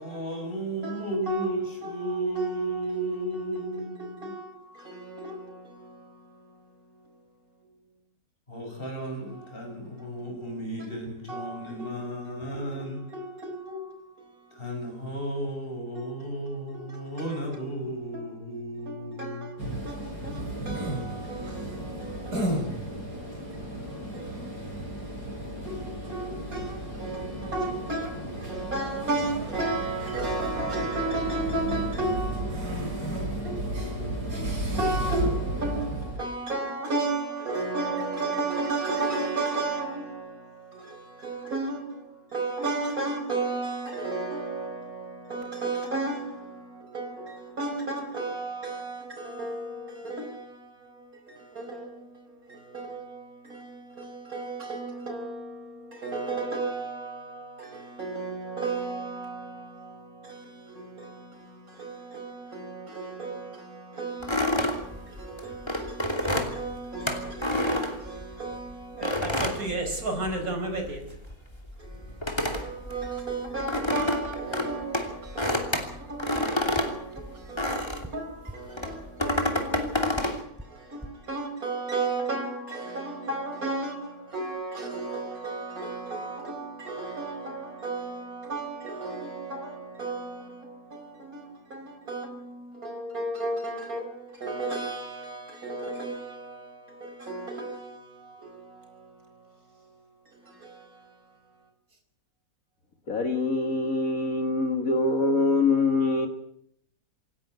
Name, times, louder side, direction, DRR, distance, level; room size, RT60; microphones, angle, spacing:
voice 1, 0.0-4.3 8.5-13.1 14.5-19.9, right 1 dB, 35° left, 6.8 m, -33 dB
voice 2, 0.8-7.8 9.3-10.1 10.8-10.9 11.3-14.7 15.9-16.4 16.7-17.7 18.1-18.5 18.9-71.2 71.8-101.7, right 3 dB, 60° right, 5.0 m, -35 dB
sound 1, 19.6-36.2, right 1 dB, 90° right, 6.7 m, -33 dB
sound 2, 64.2-68.5 69.0-70.5 70.8-78.2 78.7-80.4, left 1 dB, 15° left, 3.0 m, -29 dB
sound 3, 76.3-76.4 76.8-76.9 77.2-77.3 77.6-77.7 78.0-78.1 78.5-78.6 78.9-79.0 79.3-79.4 79.7-79.8 80.2-80.3 80.6-80.7 81.0-81.1, equal, 5° right, 2.5 m, -39 dB
voice 3, 103.1-106.3, left 3 dB, 60° left, 2.2 m, -24 dB
27.0 x 11.5 x 9.4 m
omnidirectional pair, 1.7 m